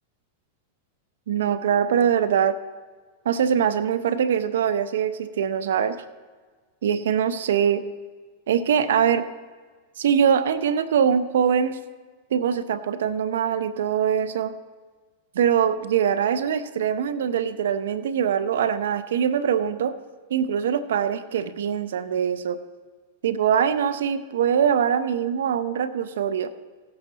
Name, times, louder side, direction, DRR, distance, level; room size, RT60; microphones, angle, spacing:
voice 1, 1.3-2.6 3.2-6.0 6.8-7.8 8.5-9.2 10.0-11.8 12.3-14.5 15.3-20.0 20.3-22.6 23.2-26.5, right 8 dB, 85° right, 12 dB, 0.7 m, -23 dB
17.0 x 7.9 x 4.0 m, 1.4 s
hypercardioid pair, 130°, 0 cm